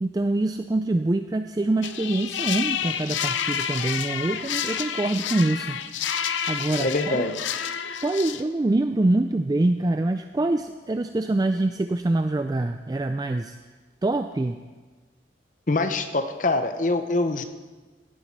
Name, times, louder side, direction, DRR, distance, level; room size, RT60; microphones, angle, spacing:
voice 1, 0.0-5.8 6.5-7.3 8.0-13.6 14.0-14.6, right 2 dB, 20° right, 8 dB, 0.3 m, -25 dB
sound 1, 1.8-8.4, left 8 dB, 85° left, 0.6 m, -29 dB
voice 2, 6.8-7.4 15.7-17.4, left 2 dB, 45° left, 8 dB, 0.8 m, -24 dB
16.5 x 9.9 x 4.6 m, 1.3 s
head